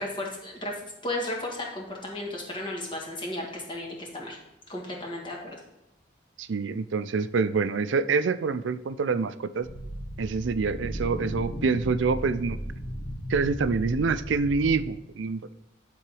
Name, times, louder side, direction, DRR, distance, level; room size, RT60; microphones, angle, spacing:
voice 1, 0.0-4.4 4.7-5.5, left 1 dB, 25° left, -1 dB, 1.8 m, -34 dB
voice 2, 6.4-9.7 10.2-12.6 13.3-15.5, right 4 dB, 80° right, 13 dB, 0.4 m, -26 dB
sound 1, 9.6-14.7, equal, 70° left, 1.5 m, -36 dB
10.5 x 3.9 x 4.8 m, 0.94 s
head